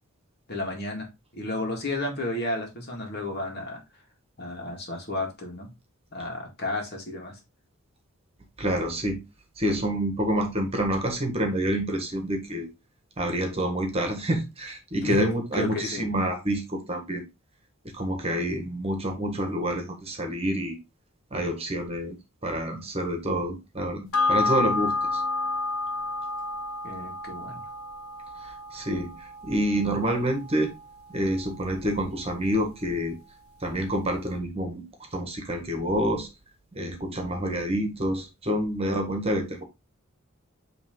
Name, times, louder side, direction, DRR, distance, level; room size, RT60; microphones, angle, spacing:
voice 1, 0.5-1.1 1.3-3.8 4.4-5.7 6.1-7.4 15.0-15.2 15.5-16.0 26.8-27.6, left 2 dB, 50° left, 2.0 m, -32 dB
voice 2, 8.6-9.2 9.6-12.7 13.2-17.2 17.9-20.8 21.3-22.2 22.4-25.2 28.4-30.7 31.1-33.2 33.6-34.8 35.1-36.3 36.7-39.6, equal, 30° right, 1.5 m, -28 dB
sound 1, 24.1-32.9 33.2-33.3, left 3 dB, 80° left, 0.9 m, -31 dB
8.5 x 3.3 x 3.8 m
head